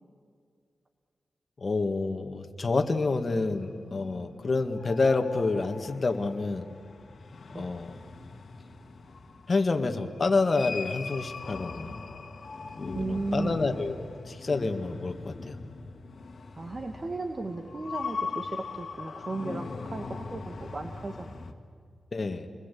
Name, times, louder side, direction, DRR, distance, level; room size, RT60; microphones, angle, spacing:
voice 1, 1.6-6.7 7.5-7.9 9.5-12.0 12.8-15.6 22.1-22.5, left 3 dB, 35° left, 5 dB, 1.8 m, -28 dB
sound 1, 2.8-21.5, left 4 dB, 55° left, 1.9 m, -41 dB
voice 2, 12.9-13.7 16.5-21.3, right 2 dB, 30° right, 5 dB, 1.5 m, -35 dB
29.0 x 21.0 x 8.5 m, 2.2 s
wide cardioid pair, 125°, 0 cm